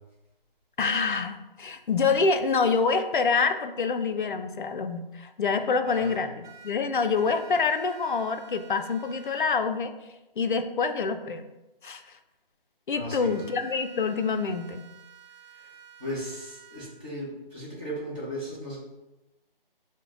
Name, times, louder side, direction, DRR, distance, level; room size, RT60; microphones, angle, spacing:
voice 1, 0.8-9.9 10.4-11.5 11.8-12.0 12.9-14.9, left 4 dB, 60° left, 8 dB, 0.4 m, -26 dB
voice 2, 5.7-6.1 12.9-13.3 15.5-15.7 16.0-18.8, equal, 10° right, -10 dB, 0.8 m, -36 dB
sound 1, 5.9-6.7 7.2-9.4 13.2-16.9, right 8 dB, 50° right, 0.9 m, -50 dB
6.2 x 2.1 x 2.5 m, 0.99 s
figure-of-eight pair, 155°, 29 cm